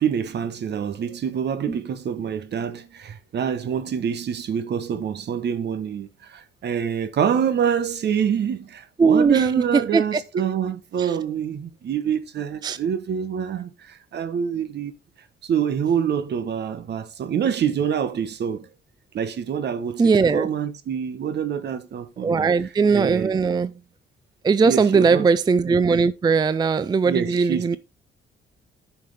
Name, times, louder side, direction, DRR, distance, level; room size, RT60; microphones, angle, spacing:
voice 1, 0.0-14.9 15.4-18.7 19.1-20.0 20.3-22.5 22.9-23.3 24.6-25.3 27.0-27.8, right 8 dB, 60° right, 1.1 m, -26 dB
voice 2, 9.0-10.2 11.0-11.2 12.6-12.8 20.0-20.5 22.2-23.7 24.4-27.8, right 5 dB, 20° right, 0.4 m, -19 dB
10.5 x 5.8 x 3.3 m
cardioid pair, 90°, 20 cm